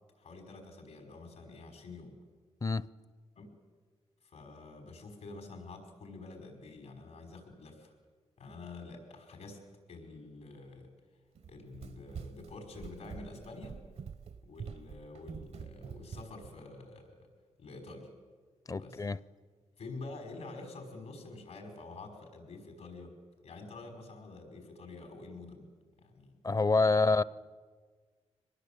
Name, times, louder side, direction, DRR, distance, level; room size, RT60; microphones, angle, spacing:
voice 1, 0.2-2.1 3.4-3.5 4.2-7.9 8.4-9.6 9.9-10.9 11.5-13.8 14.4-17.1 17.6-18.1 18.8-19.1 19.8-23.1 23.4-25.7 26.0-27.0, left 3 dB, 85° left, 5.4 m, -47 dB
Run, 11.3-16.6, right 6 dB, 65° right, 0.8 m, -46 dB
voice 2, 18.7-19.2 26.4-27.2, left 3 dB, 30° left, 0.6 m, -27 dB
24.0 x 19.5 x 8.6 m
cardioid pair, 80°, 11 cm